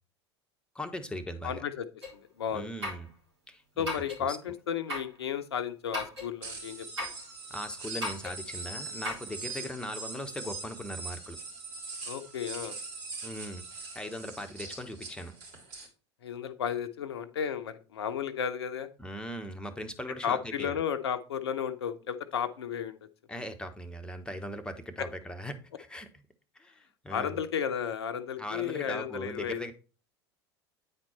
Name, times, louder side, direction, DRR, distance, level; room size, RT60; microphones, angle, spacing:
voice 1, 0.7-1.6 2.5-3.1 3.5-3.9 4.2-4.4 7.5-11.4 13.2-15.3 19.0-20.8 23.3-26.1 26.5-27.4 28.4-29.7, equal, 5° left, 6 dB, 1.2 m, -39 dB
voice 2, 1.4-1.9 2.1-2.7 3.8-6.9 9.6-9.7 12.1-12.8 16.2-18.9 20.2-23.0 25.0-25.1 27.1-29.6, left 8 dB, 70° left, 10 dB, 0.8 m, -33 dB
sound 1, 2.0-2.2 2.8-3.1 3.8-4.2 4.9-5.1 5.9-6.3 7.0-7.2 8.0-8.4 9.0-9.3, left 1 dB, 75° right, 4.0 m, -36 dB
sound 2, 6.4-15.9, right 3 dB, 60° right, 3.1 m, -42 dB
9.3 x 4.4 x 4.4 m, 0.34 s
figure-of-eight pair, 75°, 14 cm